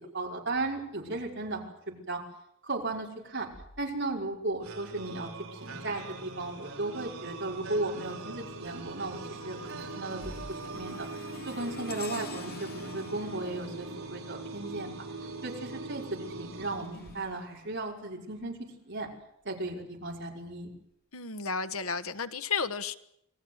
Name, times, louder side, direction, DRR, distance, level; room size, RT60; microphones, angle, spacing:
voice 1, 0.1-2.2 2.6-3.5 3.8-10.4 10.6-11.1 11.4-14.9 15.4-18.6 18.8-19.1 19.4-20.7, right 2 dB, 55° right, 0 dB, 5.5 m, -35 dB
sound 1, 3.2-4.6 5.8-6.5 8.6-8.8 10.0-12.0, equal, 15° left, 6.8 m, -52 dB
sound 2, 4.6-17.6, right 3 dB, 75° right, 4.9 m, -42 dB
sound 3, 7.3-7.7 8.2-15.0 16.3-18.5 19.1-19.3 20.2-20.3, left 3 dB, 45° left, 3.0 m, -49 dB
voice 2, 21.1-23.0, left 5 dB, 75° left, 10 dB, 1.4 m, -32 dB
27.5 x 19.5 x 8.0 m, 0.78 s
head